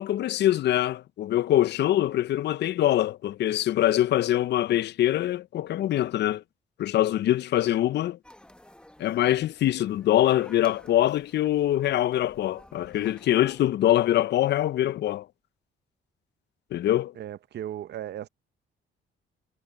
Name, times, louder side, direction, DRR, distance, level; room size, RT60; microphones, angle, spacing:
voice 1, 0.0-6.4 6.8-8.2 9.0-15.3 16.7-17.1, left 13 dB, 60° left, 0.4 m, -24 dB
sound 1, 8.2-13.7, left 1 dB, 5° left, 1.2 m, -53 dB
voice 2, 17.2-18.3, right 11 dB, 60° right, 0.7 m, -36 dB
cardioid pair, 90°, 20 cm